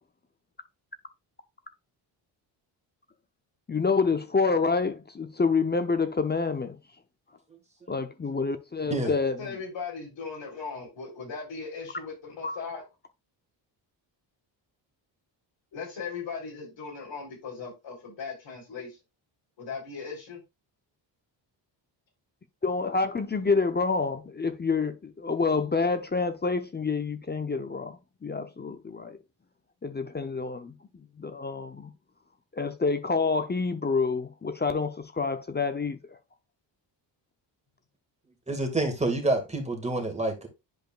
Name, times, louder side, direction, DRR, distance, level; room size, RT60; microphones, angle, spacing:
voice 1, 3.7-6.8 7.9-9.4 12.4-12.6 22.6-29.2 29.8-30.7 31.2-31.9 32.5-36.2, left 4 dB, 25° left, 0.7 m, -28 dB
voice 2, 9.4-12.8 15.7-19.0 19.6-20.4, left 5 dB, 75° left, 3.9 m, -38 dB
voice 3, 38.5-40.5, right 2 dB, 15° right, 2.1 m, -28 dB
10.5 x 5.1 x 2.5 m
cardioid pair, 105°, 44 cm